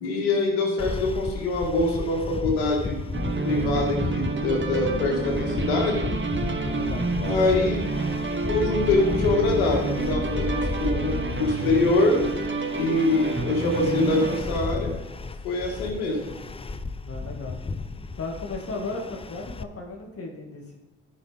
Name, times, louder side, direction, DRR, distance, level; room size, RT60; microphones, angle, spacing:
voice 1, 0.0-2.9 3.4-6.0 7.2-7.8 8.4-12.2 12.8-14.9 15.4-16.2, left 2 dB, 90° left, 0 dB, 1.9 m, -24 dB
sound 1, 0.8-19.6, left 3 dB, 20° left, 0.6 m, -34 dB
sound 2, 3.1-14.4, right 3 dB, 35° right, 1.4 m, -29 dB
voice 2, 6.5-7.1 17.0-17.6 18.2-20.8, left 3 dB, 45° left, 1 dB, 2.3 m, -35 dB
13.0 x 5.8 x 3.6 m, 1.2 s
hypercardioid pair, 50°, 32 cm